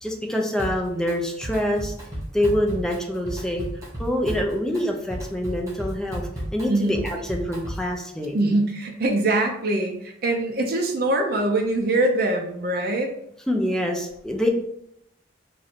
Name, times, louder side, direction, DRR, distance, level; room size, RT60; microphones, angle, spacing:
voice 1, 0.0-1.9 2.3-3.6 4.0-8.4 13.5-14.5, left 1 dB, 5° left, 1 dB, 0.5 m, -25 dB
Drum kit, 0.6-1.1 1.4-8.0, equal, 20° right, 0.9 m, -34 dB
voice 2, 8.3-13.1, right 2 dB, 55° right, 2 dB, 0.5 m, -23 dB
3.1 x 2.5 x 4.2 m, 0.74 s
head